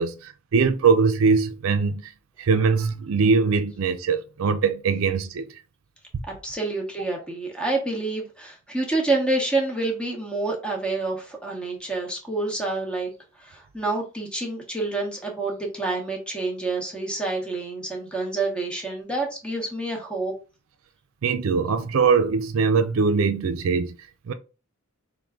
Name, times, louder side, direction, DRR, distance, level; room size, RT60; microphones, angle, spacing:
voice 1, 0.0-2.1 2.4-5.5 21.2-23.9 24.3-24.4, right 5 dB, 70° right, 0.4 m, -22 dB
voice 2, 6.4-13.1 13.4-20.3, right 2 dB, 5° left, 1.0 m, -28 dB
4.5 x 2.1 x 3.6 m
head